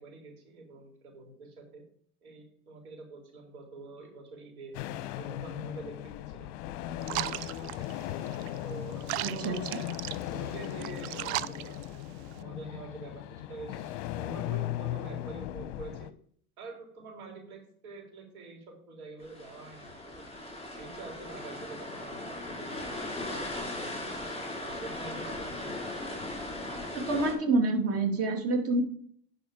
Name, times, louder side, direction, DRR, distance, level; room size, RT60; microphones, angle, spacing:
voice 1, 0.0-1.8 2.2-4.7 5.1-6.5 6.9-7.9 8.6-9.9 10.3-11.9 12.4-16.1 16.6-20.2 20.7-24.1 24.6-25.9, right 3 dB, 75° right, 1 dB, 4.0 m, -46 dB
sound 1, 4.7-16.1, left 13 dB, 45° left, 0.7 m, -37 dB
sound 2, 7.0-12.4, right 16 dB, 50° right, 0.5 m, -38 dB
voice 2, 9.2-9.6 26.9-28.8, right 2 dB, 35° right, 5 dB, 2.2 m, -27 dB
sound 3, 19.2-27.3, left 1 dB, 15° left, 3.7 m, -38 dB
10.5 x 5.1 x 4.9 m, 0.62 s
hypercardioid pair, 110°, 43 cm